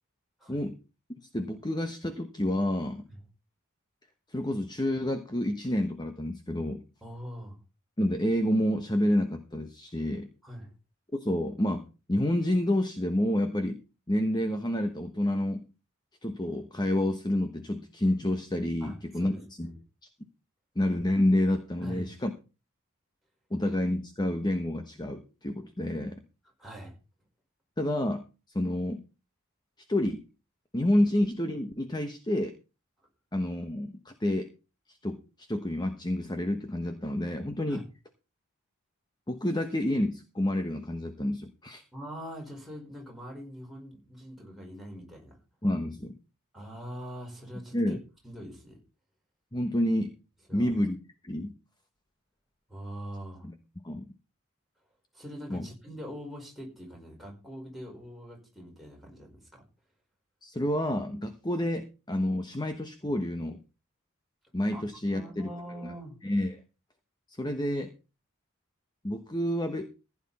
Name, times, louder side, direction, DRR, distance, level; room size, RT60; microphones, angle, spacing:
voice 1, 1.3-3.0 4.3-6.8 8.0-10.3 11.1-11.8 12.1-13.8 14.1-15.6 16.2-19.3 19.6-19.7 20.7-22.3 23.5-26.2 27.8-28.2 28.5-29.0 29.9-30.2 30.7-32.5 33.3-34.5 34.9-37.8 39.3-41.8 45.6-46.1 47.7-48.0 49.5-50.1 50.5-51.0 51.2-51.5 53.4-53.5 53.8-54.1 55.5-55.7 60.4-63.6 64.5-65.5 65.8-65.9 66.2-66.6 67.3-67.9 69.0-69.9, left 1 dB, 20° left, 7 dB, 1.0 m, -29 dB
voice 2, 7.0-7.6 10.4-10.7 18.8-19.7 21.8-22.1 26.6-27.0 37.7-37.8 41.9-45.4 46.5-48.0 48.2-48.8 50.5-50.7 52.7-53.5 55.1-59.6 64.7-64.8 65.1-66.2, equal, ahead, -2 dB, 5.1 m, -43 dB
15.5 x 9.7 x 4.2 m, 0.32 s
head